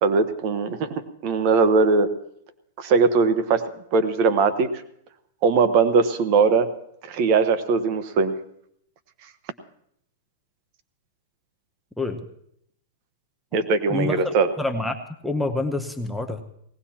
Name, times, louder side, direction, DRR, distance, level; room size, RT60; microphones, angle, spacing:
voice 1, 0.0-0.9 1.2-2.1 2.8-3.6 3.9-4.8 5.4-6.7 7.0-8.3 13.5-14.5, right 4 dB, 45° right, 10 dB, 1.1 m, -20 dB
voice 2, 13.9-15.0 15.2-16.4, left 2 dB, ahead, 4 dB, 0.9 m, -27 dB
19.0 x 17.0 x 2.9 m, 0.72 s
hypercardioid pair, 145°, 0 cm